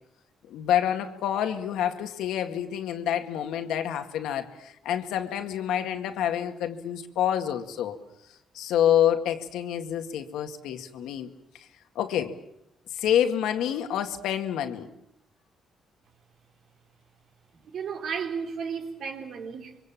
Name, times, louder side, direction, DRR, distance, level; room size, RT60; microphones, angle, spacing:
voice 1, 0.5-8.0 8.5-11.3 12.0-12.3 12.9-14.9, left 10 dB, 85° left, 2.1 m, -27 dB
voice 2, 17.5-19.8, right 6 dB, 65° right, 3.8 m, -34 dB
27.0 x 24.0 x 7.5 m
cardioid pair, 90°, 0 cm